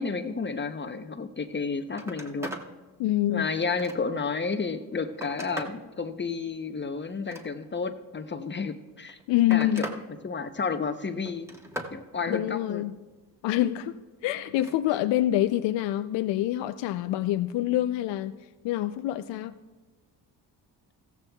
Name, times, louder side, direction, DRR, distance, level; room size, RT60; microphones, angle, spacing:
voice 1, 0.0-2.5 3.3-9.2 9.5-9.9 10.2-11.5 11.9-12.8, left 4 dB, 25° left, 0.7 m, -31 dB
Telephone, 1.5-1.6 1.9-2.7 3.2-4.3 4.8-5.8 7.1-7.9 8.9-10.0 10.4-10.8 11.3-12.0 14.4-14.8 16.2-16.3, equal, 5° right, 1.3 m, -40 dB
voice 2, 3.0-3.5 9.3-9.9 12.3-12.9 13.4-18.4 18.6-19.5, left 13 dB, 75° left, 0.6 m, -26 dB
15.0 x 14.0 x 2.3 m
supercardioid pair, 70°, 43 cm